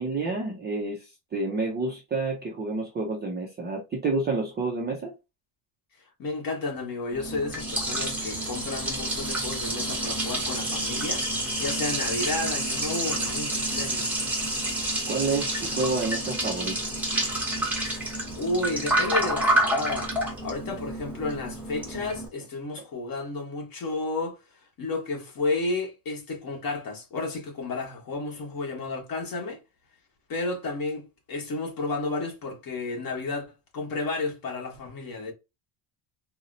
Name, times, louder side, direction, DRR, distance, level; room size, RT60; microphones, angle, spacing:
voice 1, 0.0-5.1 15.1-16.8, right 3 dB, 25° right, 0.3 m, -29 dB
voice 2, 6.2-14.2 17.7-18.0 18.4-20.1 20.4-24.3 24.8-29.6 30.3-33.5 33.7-35.3, left 3 dB, 45° left, 1.2 m, -32 dB
Liquid, 7.1-22.3, right 1 dB, 5° right, 0.7 m, -29 dB
4.0 x 2.0 x 2.5 m
cardioid pair, 165°, 50 cm